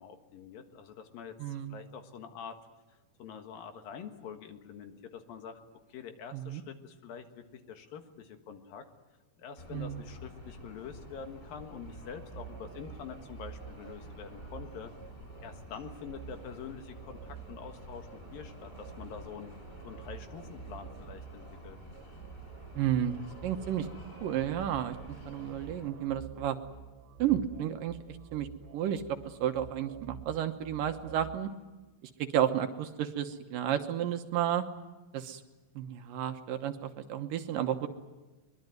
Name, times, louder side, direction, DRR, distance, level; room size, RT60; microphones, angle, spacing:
voice 1, 0.0-2.6 2.9-5.6 5.9-8.8 9.4-14.9 15.4-19.5 19.8-21.8, left 7 dB, 70° left, 6 dB, 3.2 m, -46 dB
voice 2, 1.4-1.8 6.3-6.6 9.7-10.0 22.8-23.1 23.4-23.9 24.2-25.0 25.3-26.6 27.2-28.5 28.7-31.5 32.0-34.7 35.1-35.4 35.8-37.9, right 10 dB, 70° right, 7 dB, 2.6 m, -32 dB
sound 1, 9.6-25.9, equal, 20° left, 6.2 m, -50 dB
sound 2, 11.8-31.4, right 8 dB, 85° right, 3.2 m, -50 dB
23.0 x 22.0 x 9.2 m, 1.1 s
omnidirectional pair, 4.3 m